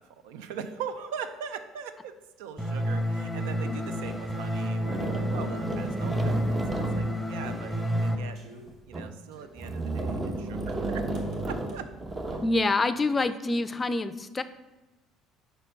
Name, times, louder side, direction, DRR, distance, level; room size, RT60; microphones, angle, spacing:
voice 1, 0.0-8.5 8.9-11.1 11.5-11.9 12.3-12.4, right 7 dB, 85° right, 10 dB, 0.5 m, -41 dB
sound 1, 2.6-8.2, equal, 5° right, 1.0 m, -30 dB
sound 2, 4.0-4.2 4.8-8.1 8.7-9.2 9.6-12.6, right 2 dB, 30° right, 0.8 m, -33 dB
sound 3, 7.4-9.9 11.1-11.9, right 2 dB, 65° right, 1.2 m, -51 dB
voice 2, 12.4-14.4, left 2 dB, 25° left, 13 dB, 0.4 m, -26 dB
5.2 x 4.3 x 5.2 m, 1.1 s
supercardioid pair, 80°, 0 cm